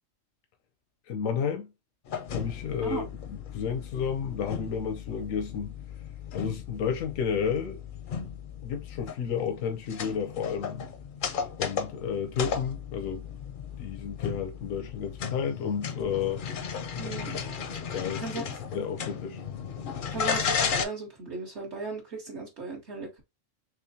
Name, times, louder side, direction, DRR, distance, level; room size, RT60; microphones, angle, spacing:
voice 1, 1.1-1.7 2.3-5.8 6.3-7.8 8.6-10.9 11.6-13.3 13.8-16.4 17.9-18.4 18.7-19.4, left 7 dB, 85° left, 1.0 m, -31 dB
sound 1, 2.1-20.8, left 6 dB, 55° left, 0.6 m, -35 dB
voice 2, 17.0-17.4 18.2-18.4 20.1-23.2, right 3 dB, 60° right, 1.2 m, -36 dB
3.7 x 3.1 x 2.6 m
omnidirectional pair, 1.3 m